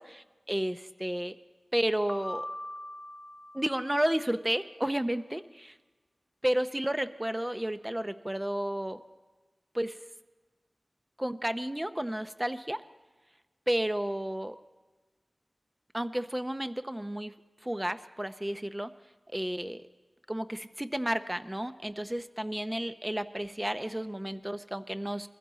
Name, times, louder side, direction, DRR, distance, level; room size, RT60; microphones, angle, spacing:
voice 1, 0.0-1.4 1.7-2.5 3.5-5.8 6.4-9.0 9.7-10.0 11.2-12.8 13.7-14.6 15.9-17.4 17.6-18.9 19.3-19.8 20.3-25.3, right 1 dB, 15° right, 11 dB, 0.6 m, -32 dB
Piano, 2.1-4.2, left 1 dB, 15° left, 1.3 m, -42 dB
22.0 x 15.0 x 3.9 m, 1.3 s
wide cardioid pair, 45°, 0 cm